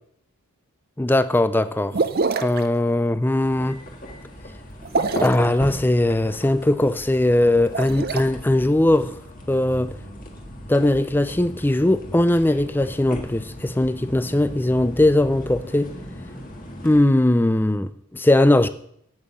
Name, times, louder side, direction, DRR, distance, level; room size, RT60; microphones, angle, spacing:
voice 1, 1.0-2.0 2.4-3.8 5.2-9.2 9.5-10.0 10.7-15.9 16.8-18.7, left 1 dB, 10° left, 0.4 m, -19 dB
sound 1, 1.9-2.6 4.8-5.5 7.6-8.2, right 4 dB, 45° right, 0.6 m, -24 dB
sound 2, 3.4-17.0, equal, 40° left, 1.7 m, -37 dB
8.9 x 8.6 x 7.2 m
head